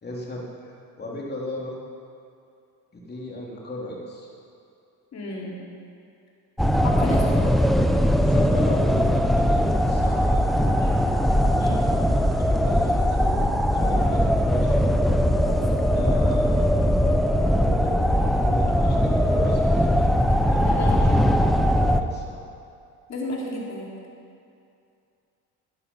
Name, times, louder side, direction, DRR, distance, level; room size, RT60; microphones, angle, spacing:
voice 1, 0.0-1.8 2.9-4.3 7.0-7.1 8.2-11.0 11.7-13.4 13.7-14.9 15.5-16.6 17.6-20.0 20.5-21.5 21.9-22.4, left 1 dB, 25° left, -3 dB, 3.4 m, -36 dB
voice 2, 5.1-5.6 6.8-7.4 11.6-11.9 13.8-14.3 15.5-15.6 20.6-21.1 23.1-23.9, left 1 dB, 40° left, -3 dB, 3.8 m, -33 dB
sound 1, 6.6-22.0, equal, ahead, 0.7 m, -20 dB
14.5 x 9.7 x 5.6 m, 2.5 s
supercardioid pair, 95°, 39 cm